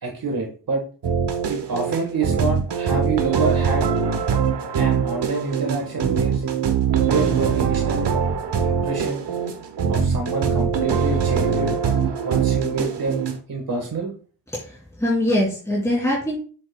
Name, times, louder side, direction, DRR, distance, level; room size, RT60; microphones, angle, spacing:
voice 1, 0.0-0.8 1.5-3.9 4.8-6.4 7.1-8.1 8.6-9.2 9.9-11.8 12.2-13.2 13.5-14.1, right 3 dB, 60° right, 1 dB, 1.5 m, -27 dB
sound 1, 1.0-13.4, right 6 dB, 85° right, 1.1 m, -22 dB
voice 2, 14.5-16.4, left 1 dB, 5° left, -6 dB, 2.8 m, -23 dB
7.6 x 7.3 x 2.2 m, 0.40 s
wide cardioid pair, 105°, 40 cm